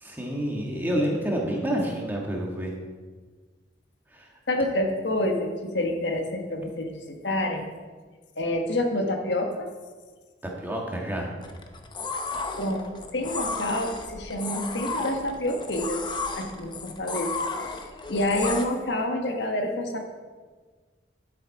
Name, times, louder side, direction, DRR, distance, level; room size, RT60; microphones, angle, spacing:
voice 1, 0.0-2.7 4.1-4.3 10.6-11.3, equal, 10° right, -1 dB, 1.6 m, -28 dB
voice 2, 4.5-7.7 8.4-9.7 12.6-12.9 13.1-16.0 16.3-17.7 18.1-20.0, left 1 dB, 70° left, 3 dB, 1.3 m, -28 dB
sound 1, 11.4-18.6, left 4 dB, 25° left, 0.7 m, -33 dB
11.5 x 7.4 x 4.8 m, 1.4 s
head